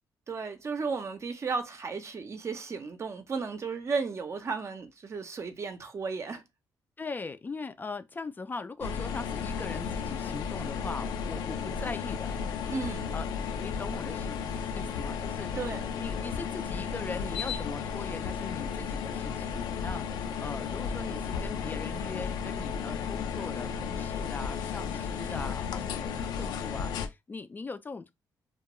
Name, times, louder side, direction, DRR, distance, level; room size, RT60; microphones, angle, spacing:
voice 1, 0.3-6.4 12.7-13.1 15.6-15.8, right 4 dB, 40° right, 0.5 m, -34 dB
voice 2, 7.0-12.4 13.1-13.3 13.6-14.4 14.7-15.5 15.9-28.1, left 4 dB, 25° left, 0.3 m, -40 dB
sound 1, 8.8-27.1, left 6 dB, 90° left, 0.4 m, -34 dB
2.2 x 2.2 x 2.9 m
cardioid pair, 90°, 7 cm